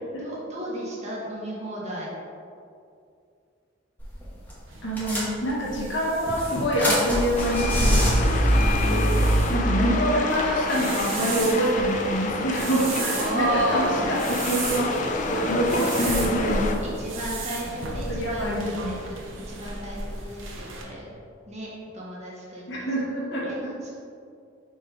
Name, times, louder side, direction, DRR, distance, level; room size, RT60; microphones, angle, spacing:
voice 1, 0.2-2.1 9.5-9.8 13.1-14.1 16.0-16.2 16.8-19.2 19.5-21.1 21.5-22.9 23.5-23.6 23.8-23.9, equal, 35° right, -5 dB, 1.6 m, -33 dB
sound 1, 4.0-4.2 4.5-4.6 5.0-5.8 6.3-9.4, equal, 10° left, 1.3 m, -23 dB
sound 2, 4.7-20.8, right 3 dB, 75° right, 1.0 m, -35 dB
voice 2, 4.8-8.0 8.8-9.1 9.5-15.0 15.3-16.8 17.4-17.5 18.1-19.0 22.7-23.5, right 1 dB, 65° left, -5 dB, 1.3 m, -26 dB
sound 3, 7.4-16.8, left 3 dB, 40° left, 0.5 m, -29 dB
5.4 x 4.6 x 4.7 m, 2.4 s
head